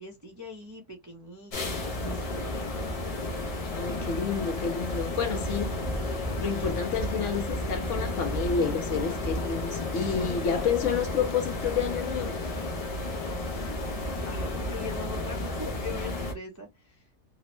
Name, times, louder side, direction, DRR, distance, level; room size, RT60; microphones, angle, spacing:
voice 1, 0.0-3.0 14.3-17.0, left 4 dB, 30° right, 0.3 m, -42 dB
sound 1, 1.5-16.3, left 1 dB, 50° left, 0.4 m, -32 dB
voice 2, 3.7-5.7 6.4-12.4, left 6 dB, 65° left, 0.8 m, -29 dB
2.9 x 2.0 x 2.9 m
omnidirectional pair, 1.5 m